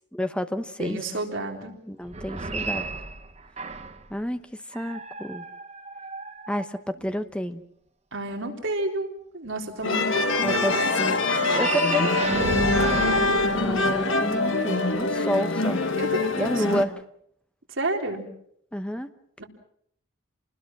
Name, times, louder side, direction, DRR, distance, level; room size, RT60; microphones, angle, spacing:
voice 1, 0.1-1.0 1.9-2.9 4.1-4.4 4.7-5.4 6.5-7.6 10.4-11.2 11.6-12.1 13.4-15.8 16.4-16.9 18.7-19.1, equal, 5° left, 9 dB, 1.0 m, -29 dB
voice 2, 0.8-1.7 8.1-10.9 12.7-13.6 16.0-16.9 17.7-18.3 19.4-19.5, right 2 dB, 65° right, 1 dB, 3.8 m, -31 dB
sound 1, 2.0-4.1 4.7-7.1 11.2-14.4, right 3 dB, 35° right, 1.4 m, -33 dB
sound 2, 9.8-16.8, left 3 dB, 70° left, 1.7 m, -24 dB
28.5 x 20.0 x 6.1 m, 0.68 s
head